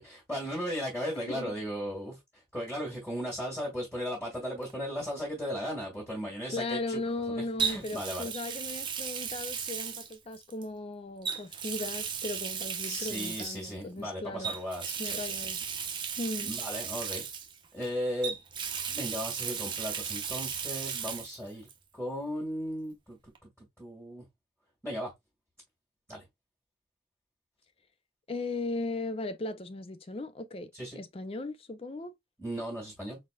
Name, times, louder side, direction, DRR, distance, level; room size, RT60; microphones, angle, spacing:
voice 1, 0.0-7.0 7.4-8.3 12.8-15.3 16.4-17.2 17.7-18.4 18.9-21.7 21.9-23.3 23.6-24.3 24.8-25.1 26.1-26.2 30.7-31.0 32.4-33.2, equal, 5° left, 1.9 m, -36 dB
voice 2, 1.2-1.5 6.5-14.5 15.0-15.6 16.2-16.5 28.3-32.1, left 2 dB, 30° left, 0.5 m, -37 dB
Water tap faucet, 4.6-4.9 7.6-10.6 11.2-13.7 14.4-17.9 18.2-21.4 21.7-21.8 23.3-23.4, right 7 dB, 25° right, 0.8 m, -35 dB
4.1 x 4.1 x 2.3 m
head